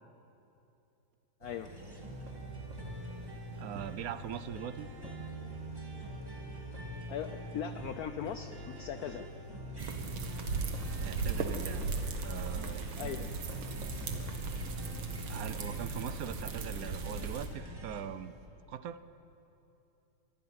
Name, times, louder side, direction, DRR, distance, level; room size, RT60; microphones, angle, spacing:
sound 1, 1.4-18.5, right 3 dB, 40° right, 1.8 m, -53 dB
sound 2, 1.6-18.0, right 1 dB, 10° right, 2.0 m, -44 dB
voice 1, 3.6-4.9 11.0-11.8 12.2-12.9 15.3-18.3 18.7-19.0, right 9 dB, 65° right, 13 dB, 0.9 m, -41 dB
voice 2, 7.1-9.3 13.0-13.3, left 8 dB, 65° left, 9 dB, 0.9 m, -39 dB
sound 3, 9.8-17.5, right 4 dB, 80° right, 2.3 m, -37 dB
24.5 x 23.0 x 5.9 m, 2.9 s
omnidirectional pair, 2.2 m